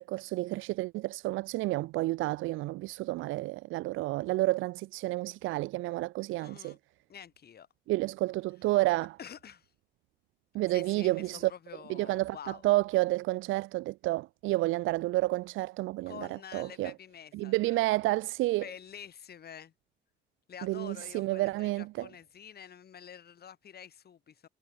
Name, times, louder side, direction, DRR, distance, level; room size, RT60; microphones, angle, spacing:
voice 1, 0.0-6.8 7.9-9.2 10.5-11.5 11.9-16.9 17.3-18.6 20.6-22.1, right 19 dB, 90° right, 0.4 m, -30 dB
voice 2, 6.4-6.8 7.1-7.7 9.2-9.7 10.7-12.6 16.1-17.8 18.6-19.7 20.5-24.5, left 8 dB, 55° left, 2.3 m, -48 dB
cardioid pair, 90°, 20 cm